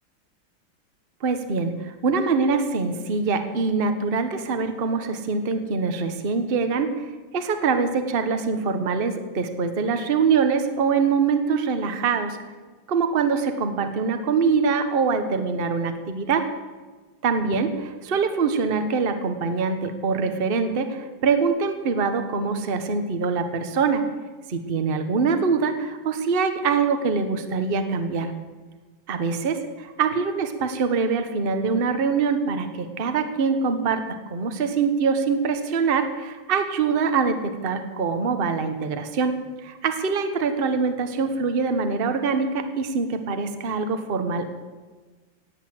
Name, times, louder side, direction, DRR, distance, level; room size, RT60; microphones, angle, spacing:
voice 1, 1.2-7.1 7.3-12.4 12.9-16.5 17.2-24.0 24.5-28.3 29.1-39.3 39.6-44.5, right 5 dB, 35° right, 7 dB, 1.1 m, -24 dB
17.5 x 8.4 x 7.8 m, 1.3 s
omnidirectional pair, 2.2 m